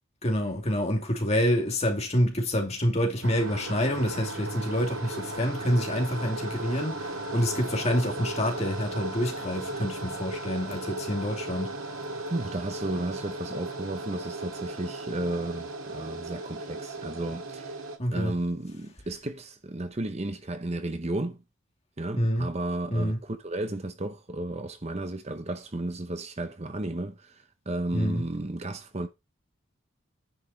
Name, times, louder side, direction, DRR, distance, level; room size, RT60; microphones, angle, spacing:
voice 1, 0.2-11.8 18.0-18.3 22.2-22.5 22.9-23.2 27.9-28.2, equal, 30° left, 2.6 m, -27 dB
sound 1, 3.2-18.0, right 2 dB, 80° right, 2.1 m, -36 dB
voice 2, 12.3-17.8 18.1-21.4 22.0-29.1, right 1 dB, 30° right, 0.8 m, -33 dB
10.0 x 5.5 x 4.4 m
head